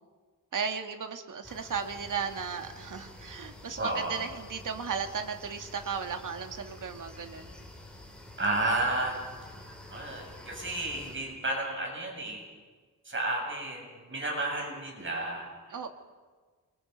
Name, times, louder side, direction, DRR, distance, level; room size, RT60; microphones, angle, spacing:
voice 1, 0.5-7.5 15.7-15.9, right 6 dB, 75° right, 5 dB, 2.1 m, -35 dB
sound 1, 1.4-11.2, left 1 dB, 5° left, 6.1 m, -48 dB
voice 2, 3.8-4.2 8.4-9.2 9.7-12.4 13.0-15.9, right 2 dB, 40° right, 0 dB, 7.5 m, -32 dB
29.0 x 25.0 x 5.5 m, 1.5 s
wide cardioid pair, 115°, 32 cm